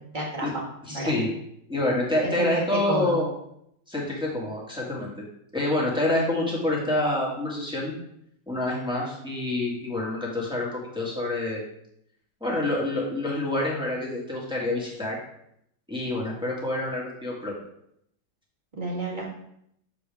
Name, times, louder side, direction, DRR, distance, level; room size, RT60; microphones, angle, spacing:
voice 1, 0.1-0.5 0.9-1.1 2.2-2.5 2.9-3.2 18.7-19.2, right 1 dB, 25° right, -3 dB, 1.7 m, -30 dB
voice 2, 0.9-1.3 1.7-3.3 3.9-5.1 5.5-7.9 8.5-11.6 12.4-15.2 15.9-17.5, left 1 dB, 5° right, -5 dB, 1.7 m, -27 dB
6.9 x 6.3 x 3.5 m, 0.74 s
omnidirectional pair, 2.0 m